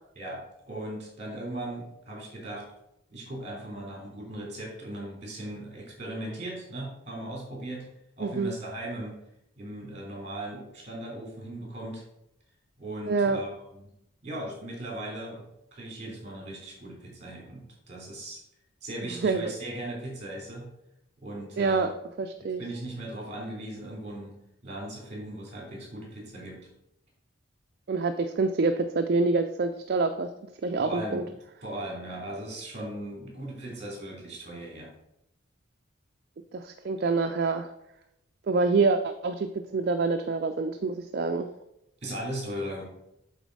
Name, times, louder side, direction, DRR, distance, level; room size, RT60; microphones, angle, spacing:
voice 1, 0.1-2.6 3.1-7.8 8.2-9.2 9.6-12.0 12.8-13.9 14.2-15.4 15.7-17.6 17.9-18.4 18.8-20.7 21.2-21.9 22.6-24.3 24.6-26.6 30.8-31.3 31.6-34.9 42.0-42.8, right 1 dB, 30° right, -2 dB, 2.9 m, -38 dB
voice 2, 8.2-8.5 13.0-13.4 19.2-19.5 21.6-21.9 22.2-22.6 27.9-30.3 30.6-31.2 36.5-37.7 38.5-41.5, right 4 dB, 50° right, 6 dB, 0.4 m, -26 dB
8.2 x 3.9 x 4.7 m, 0.82 s
head